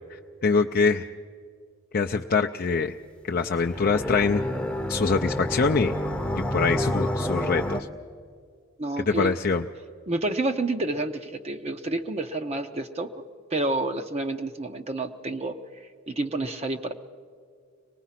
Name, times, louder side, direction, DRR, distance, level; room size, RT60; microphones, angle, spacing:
voice 1, 0.1-1.0 1.9-3.0 3.2-4.4 4.9-5.9 6.3-7.9 9.1-9.7, left 4 dB, 45° left, 3 dB, 0.4 m, -24 dB
sound 1, 3.6-7.8, equal, 5° left, 0.7 m, -28 dB
voice 2, 8.8-9.4 10.1-13.1 13.5-15.5 16.1-16.9, right 2 dB, 30° right, 6 dB, 0.6 m, -29 dB
24.5 x 19.5 x 5.8 m, 2.2 s
head